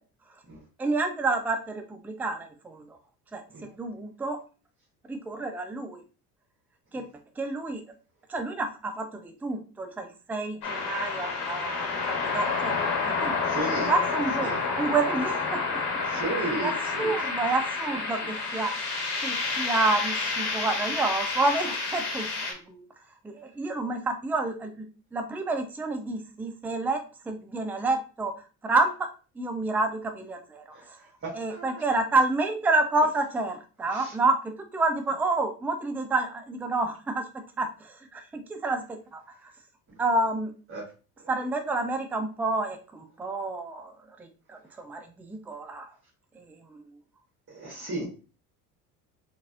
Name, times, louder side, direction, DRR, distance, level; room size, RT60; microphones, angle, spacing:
voice 1, 0.8-3.0 3.3-4.4 5.1-6.0 6.9-7.0 7.4-7.8 8.3-15.6 16.6-16.7 17.0-18.9 19.2-22.8 23.2-24.9 25.1-28.3 28.6-29.1 29.4-31.0 31.3-39.5 40.0-40.5 41.3-45.9 46.4-46.8, right 2 dB, 5° right, 6 dB, 0.4 m, -29 dB
sound 1, 10.6-22.5, left 4 dB, 55° left, 1.5 m, -29 dB
voice 2, 13.4-13.9 14.4-14.6 16.1-17.1 30.7-30.8 31.2-31.8 33.9-34.1 39.9-40.0 40.7-40.9 41.2-41.3 47.5-48.1, right 2 dB, 30° right, -3 dB, 1.3 m, -34 dB
3.8 x 2.7 x 2.4 m, 0.35 s
hypercardioid pair, 65°, 47 cm